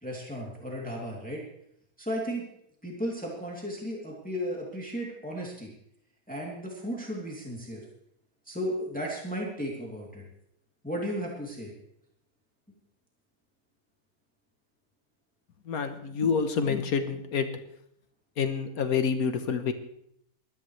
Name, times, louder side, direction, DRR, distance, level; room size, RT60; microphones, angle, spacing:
voice 1, 0.0-1.4 2.0-2.4 2.8-5.7 6.3-7.8 8.5-10.3 10.8-11.7, equal, 5° left, -3 dB, 2.6 m, -34 dB
voice 2, 15.7-17.5 18.4-19.7, left 6 dB, 75° left, 8 dB, 1.4 m, -27 dB
20.5 x 13.5 x 3.2 m, 0.73 s
omnidirectional pair, 1.6 m